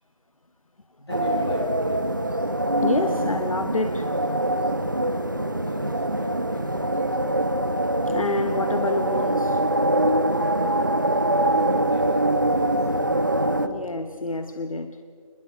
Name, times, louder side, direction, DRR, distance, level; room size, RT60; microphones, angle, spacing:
voice 1, 1.0-2.1 5.0-7.0 11.4-13.3, equal, 45° left, 6.0 m, -39 dB
sound 1, 1.1-13.7, right 1 dB, 35° right, 0.9 m, -23 dB
voice 2, 2.8-4.8 8.1-9.6 13.6-15.0, left 2 dB, 70° left, 1.1 m, -29 dB
28.5 x 21.0 x 5.1 m
figure-of-eight pair, 180°, 19 cm